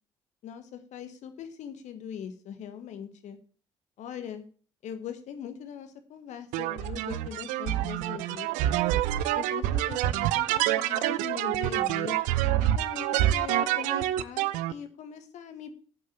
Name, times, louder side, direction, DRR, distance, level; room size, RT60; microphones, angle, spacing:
voice 1, 0.4-3.4 4.0-4.4 4.8-8.7 9.3-12.2 12.6-15.7, left 8 dB, 60° left, 9 dB, 1.6 m, -41 dB
sound 1, 6.5-14.7, right 13 dB, 70° right, 0.6 m, -27 dB
8.0 x 7.7 x 7.1 m, 0.42 s
figure-of-eight pair, 40°, 14 cm